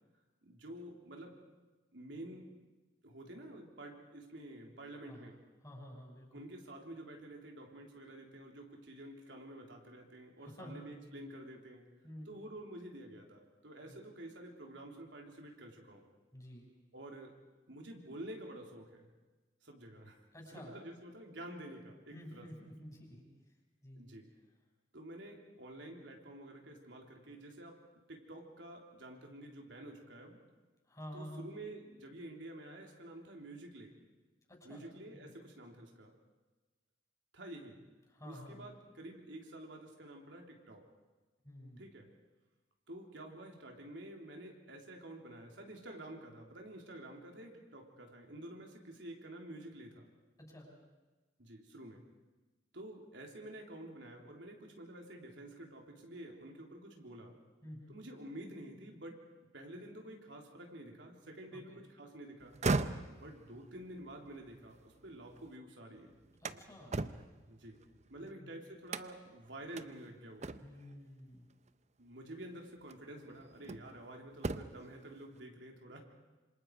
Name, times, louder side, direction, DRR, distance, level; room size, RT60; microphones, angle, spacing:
voice 1, 0.4-1.4 1.9-2.5 3.0-5.4 6.3-11.8 12.3-16.0 16.9-17.3 17.7-19.1 19.6-20.3 20.5-22.5 24.0-24.3 24.9-27.8 28.1-30.4 31.1-33.9 34.6-36.1 37.3-37.8 38.3-40.8 41.8-42.1 42.9-50.0 51.4-52.0 52.7-57.3 57.9-59.2 59.5-62.5 63.1-64.8 65.0-66.1 67.5-67.8 68.1-70.5 72.0-76.0, right 1 dB, 90° right, 1 dB, 3.5 m, -49 dB
voice 2, 5.0-6.4 10.4-11.3 12.0-12.4 13.9-14.0 16.3-16.6 20.3-20.8 22.1-23.3 23.8-24.0 30.8-31.6 34.5-34.9 35.1-35.3 38.1-38.7 41.4-41.9 50.4-50.7 57.6-58.0 61.5-61.8 66.4-67.0 68.2-68.5 70.6-71.5, equal, 20° left, -1 dB, 6.6 m, -51 dB
sound 1, 62.4-65.5 65.9-68.3 68.9-69.4 69.8-69.9 70.4-70.9 72.2-72.3 72.9-74.0 74.3-74.9, right 3 dB, 40° right, 0.7 m, -39 dB
27.0 x 26.5 x 4.8 m, 1.2 s
head